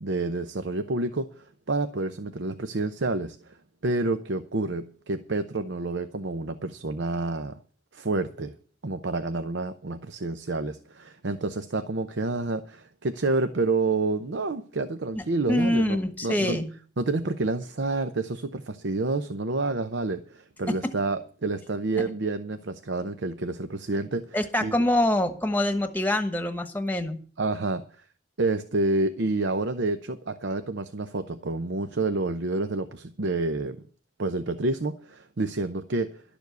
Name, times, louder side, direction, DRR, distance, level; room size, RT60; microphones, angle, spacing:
voice 1, 0.0-3.6 3.8-7.6 7.9-8.5 8.8-16.6 17.0-24.7 27.4-27.8 28.4-33.8 34.2-36.2, right 3 dB, 80° right, 9 dB, 0.7 m, -29 dB
voice 2, 15.1-16.7 20.7-20.8 22.0-22.1 24.3-27.2, left 1 dB, 10° left, 8 dB, 1.1 m, -25 dB
12.0 x 7.1 x 8.1 m, 0.42 s
head